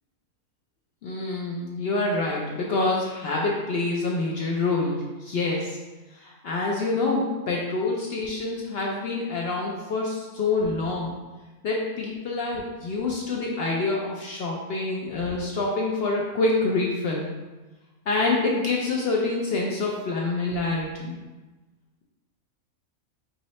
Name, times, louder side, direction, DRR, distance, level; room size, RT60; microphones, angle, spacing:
voice 1, 1.0-5.8 6.1-11.1 11.6-17.3 18.1-21.2, left 3 dB, 65° left, -2 dB, 0.6 m, -26 dB
3.0 x 2.7 x 4.1 m, 1.2 s
omnidirectional pair, 1.5 m